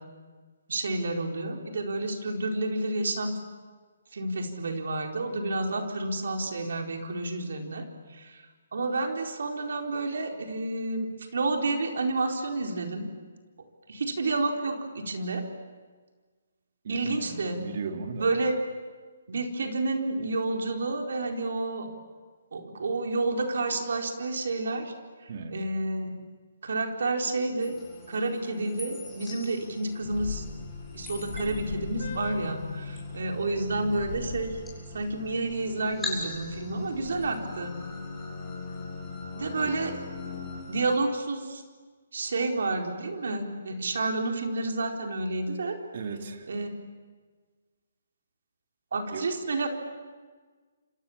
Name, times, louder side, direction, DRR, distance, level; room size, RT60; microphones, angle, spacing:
voice 1, 0.7-3.4 4.1-7.8 8.1-8.4 8.7-13.1 13.9-15.4 16.9-17.6 18.2-18.5 19.3-21.9 22.5-24.9 25.5-26.1 26.6-27.8 28.1-30.4 30.9-34.6 34.9-37.8 39.4-40.0 40.7-41.6 42.1-45.8 46.5-46.7 48.9-49.7, right 2 dB, 70° right, 3 dB, 4.3 m, -30 dB
voice 2, 16.8-18.3 25.3-25.6 39.6-39.7 45.9-46.5 49.1-49.2, right 4 dB, 55° right, 5 dB, 3.2 m, -36 dB
sound 1, 27.6-41.0, left 2 dB, 5° left, 8.0 m, -44 dB
sound 2, 30.0-40.6, left 4 dB, 60° left, 7.5 m, -39 dB
29.0 x 26.0 x 7.3 m, 1.4 s
hypercardioid pair, 145°, 0 cm